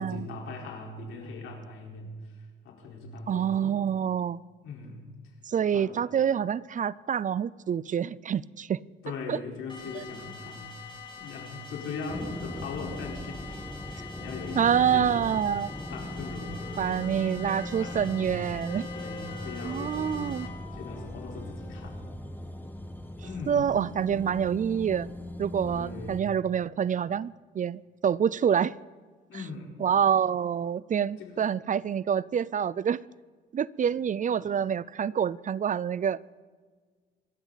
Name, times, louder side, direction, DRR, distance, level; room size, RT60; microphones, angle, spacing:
voice 1, 0.0-3.8 4.6-5.0 5.7-5.9 9.0-15.2 15.9-16.6 17.8-18.4 18.9-20.2 20.7-22.1 23.2-23.7 25.2-25.3 25.6-26.2 29.3-29.7 31.2-31.5, left 4 dB, 80° left, 4.4 m, -40 dB
voice 2, 3.3-4.4 5.5-8.8 9.3-9.4 9.9-10.0 14.6-15.7 16.8-18.9 19.6-20.5 23.5-25.1 25.4-28.8 29.8-33.0 33.5-36.2, right 8 dB, 40° right, 0.4 m, -27 dB
sound 1, 9.7-20.5, left 5 dB, 25° left, 3.5 m, -45 dB
sound 2, 12.1-26.2, left 1 dB, 10° left, 1.3 m, -39 dB
Wind instrument woodwind instrument, 14.0-18.0 18.6-22.2, left 2 dB, 50° left, 3.9 m, -48 dB
25.5 x 13.5 x 4.1 m
cardioid pair, 90°, 20 cm